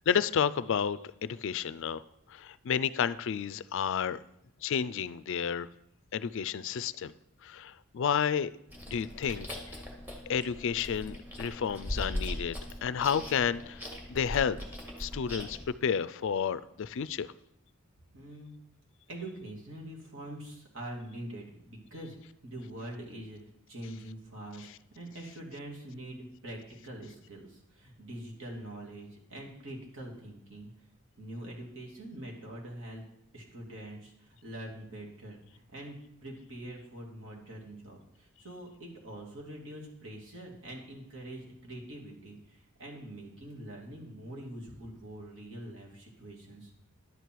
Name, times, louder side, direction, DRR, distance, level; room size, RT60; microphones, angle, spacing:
voice 1, 0.1-2.0 2.3-4.2 4.6-5.7 6.1-7.1 7.4-8.5 8.9-9.8 10.3-14.6 15.0-17.3 24.6-24.7, left 7 dB, 60° left, 16 dB, 0.4 m, -31 dB
Chewing mastication, 8.7-15.7, equal, 10° right, 1.8 m, -40 dB
voice 2, 18.1-18.5 19.1-22.2 22.4-23.4 23.7-26.6 26.8-30.7 31.2-33.0 33.3-36.0 36.2-46.7, right 1 dB, 65° right, -1 dB, 2.5 m, -44 dB
11.0 x 8.4 x 4.6 m, 0.77 s
head